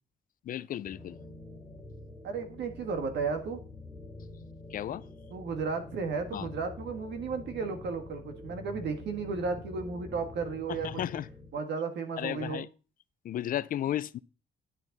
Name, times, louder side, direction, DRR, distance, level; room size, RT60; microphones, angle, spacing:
voice 1, 0.5-1.2 4.7-5.0 6.3-6.5 10.8-11.3 12.2-12.7 13.2-14.2, left 11 dB, 55° left, 0.4 m, -33 dB
sound 1, 0.8-11.5, left 2 dB, 5° right, 2.4 m, -46 dB
voice 2, 2.2-3.6 5.3-11.0 11.5-12.7, right 4 dB, 75° right, 1.7 m, -34 dB
10.0 x 9.0 x 4.0 m
wide cardioid pair, 180°, 18 cm